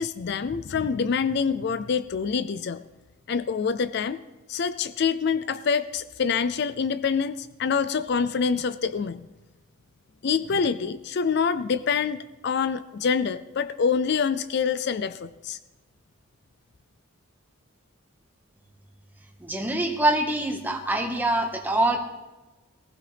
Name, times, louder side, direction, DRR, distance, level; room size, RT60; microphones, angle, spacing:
voice 1, 0.0-2.8 3.3-4.2 4.5-9.2 10.2-15.6, left 6 dB, 50° left, 14 dB, 0.4 m, -26 dB
voice 2, 19.4-22.0, right 1 dB, 10° right, 2 dB, 1.5 m, -24 dB
19.5 x 15.5 x 3.4 m, 1.1 s
head